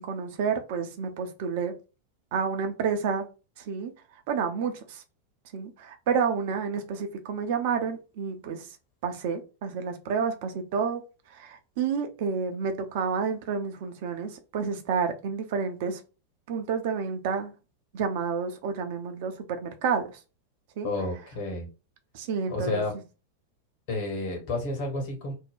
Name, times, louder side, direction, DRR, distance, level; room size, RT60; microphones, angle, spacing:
voice 1, 0.0-1.7 2.3-3.3 3.6-3.9 4.3-5.0 5.5-8.7 9.0-11.0 11.3-16.0 16.5-17.5 17.9-20.2 20.8-20.9 22.1-22.8, right 6 dB, 50° right, 0.5 m, -30 dB
voice 2, 20.8-21.7 22.5-22.9 23.9-25.3, left 2 dB, 50° left, 1.3 m, -30 dB
2.6 x 2.2 x 3.5 m
figure-of-eight pair, 90°, 0 cm